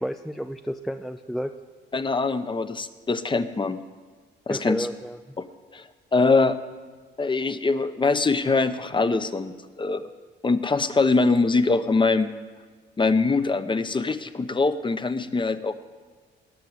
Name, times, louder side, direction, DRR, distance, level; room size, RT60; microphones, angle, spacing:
voice 1, 0.0-1.5 4.5-5.2, equal, ahead, 7 dB, 0.4 m, -31 dB
voice 2, 1.9-3.8 4.5-4.9 5.4-5.5 5.7-5.8 6.1-6.6 7.2-10.1 10.4-12.3 13.0-15.7, left 3 dB, 25° left, 11 dB, 0.8 m, -23 dB
18.5 x 6.9 x 7.9 m, 1.5 s
cardioid pair, 90°, 20 cm